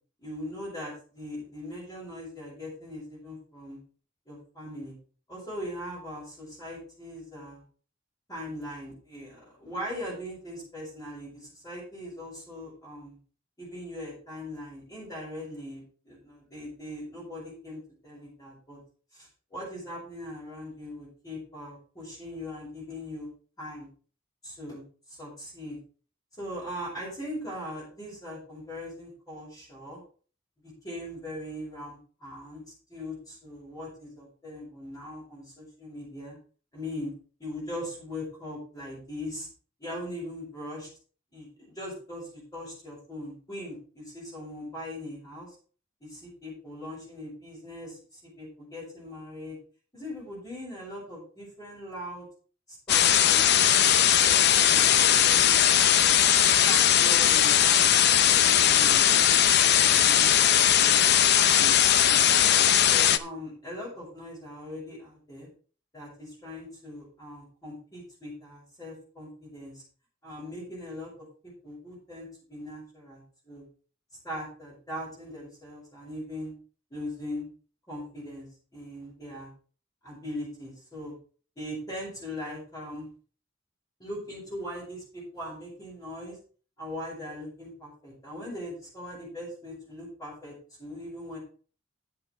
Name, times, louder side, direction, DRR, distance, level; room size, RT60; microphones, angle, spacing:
voice 1, 0.2-3.8 4.3-4.9 5.3-7.6 8.3-13.2 13.6-18.8 19.1-23.3 23.6-23.9 24.4-25.8 26.4-30.0 30.6-36.4 36.7-37.1 37.4-39.5 39.8-40.9 41.3-45.5 46.0-49.6 49.9-52.3 52.7-55.9 56.6-59.4 59.9-61.0 61.5-61.8 62.1-65.5 65.9-69.8 70.2-71.1 71.4-73.6 74.2-76.5 76.9-77.4 77.9-78.5 78.7-79.5 80.0-81.1 81.6-83.1 84.0-86.4 86.8-91.4, left 1 dB, 20° left, -7 dB, 6.4 m, -40 dB
sound 1, 52.9-63.2, left 10 dB, 60° left, 0.7 m, -20 dB
9.9 x 8.7 x 4.6 m, 0.40 s
head